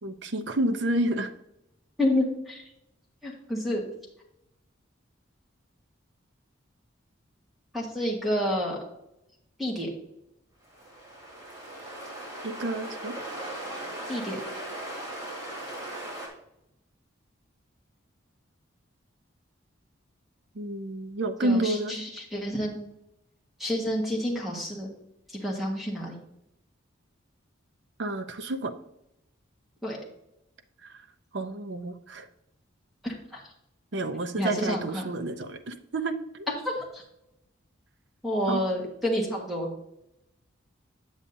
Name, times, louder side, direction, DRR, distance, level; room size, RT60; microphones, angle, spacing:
voice 1, 0.0-1.3 12.4-13.1 20.5-22.0 28.0-28.7 30.9-31.0 31.3-32.3 33.9-36.5 38.5-38.6, right 1 dB, 60° right, 9 dB, 0.7 m, -30 dB
voice 2, 2.0-2.6 3.2-3.8 7.7-8.8 9.6-9.9 14.1-14.4 21.4-22.8 23.6-24.9 25.3-26.1 29.8-30.0 33.0-33.4 34.4-35.1 36.6-37.0 38.2-39.7, left 1 dB, ahead, -2 dB, 1.5 m, -29 dB
sound 1, 10.6-16.3, right 1 dB, 20° right, 2.2 m, -38 dB
8.5 x 7.2 x 2.7 m, 0.81 s
head